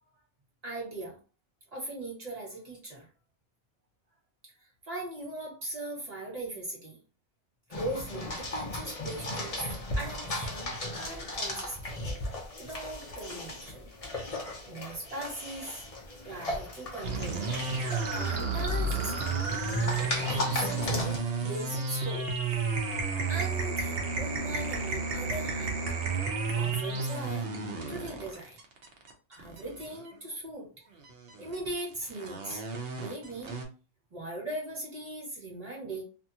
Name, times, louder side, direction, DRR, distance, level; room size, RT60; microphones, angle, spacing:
voice 1, 0.6-1.2 1.7-3.1 4.6-7.0 7.7-9.6 9.9-12.0 12.6-13.9 14.6-15.8 16.2-17.5 18.1-19.4 20.3-22.3 23.3-25.7 26.5-27.5 27.9-28.6 29.3-30.7 31.4-32.6 33.0-33.5 34.1-36.0, right 1 dB, 30° right, -3 dB, 1.3 m, -39 dB
sound 1, 7.7-21.2, left 1 dB, 45° left, 0.4 m, -36 dB
sound 2, 17.0-30.1 31.0-33.6, right 4 dB, 55° right, 0.7 m, -32 dB
2.7 x 2.4 x 2.7 m, 0.35 s
omnidirectional pair, 1.5 m